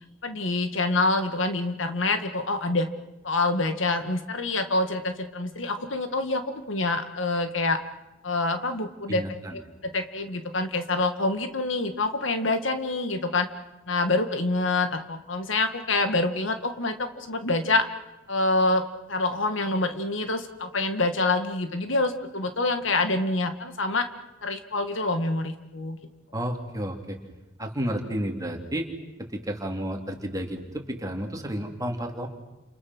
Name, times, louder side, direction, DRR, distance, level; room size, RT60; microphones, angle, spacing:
voice 1, 0.2-2.9 3.2-6.4 6.7-7.8 8.2-9.2 9.5-13.5 13.9-17.8 18.3-18.8 19.1-24.0 24.4-26.0, left 2 dB, 75° left, 7 dB, 2.0 m, -26 dB
voice 2, 9.1-9.6 26.3-27.2 27.6-28.9 29.3-32.3, equal, 20° right, 2 dB, 3.3 m, -31 dB
30.0 x 28.5 x 6.4 m, 1.0 s
head